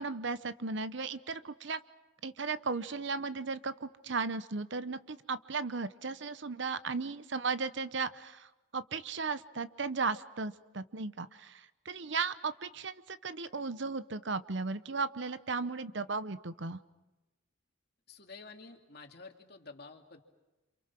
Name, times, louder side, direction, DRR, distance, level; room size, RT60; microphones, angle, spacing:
voice 1, 0.0-1.8 2.2-16.8, right 4 dB, 60° right, 14 dB, 0.9 m, -36 dB
voice 2, 18.1-20.2, left 3 dB, 50° left, 3 dB, 2.6 m, -50 dB
29.0 x 27.0 x 6.0 m, 1.1 s
head